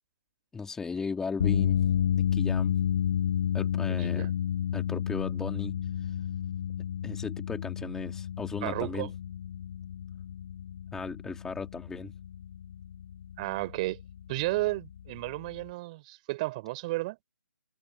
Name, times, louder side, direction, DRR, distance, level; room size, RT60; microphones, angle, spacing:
voice 1, 0.5-1.8 2.1-2.7 3.5-4.3 4.7-6.1 7.0-9.1 10.9-12.1, left 5 dB, 5° left, 3.2 m, -36 dB
sound 1, 1.4-15.7, left 9 dB, 30° left, 0.9 m, -31 dB
voice 2, 8.6-9.1 13.4-14.0 14.3-17.2, right 20 dB, 20° right, 4.5 m, -32 dB
figure-of-eight pair, 145°, 11 cm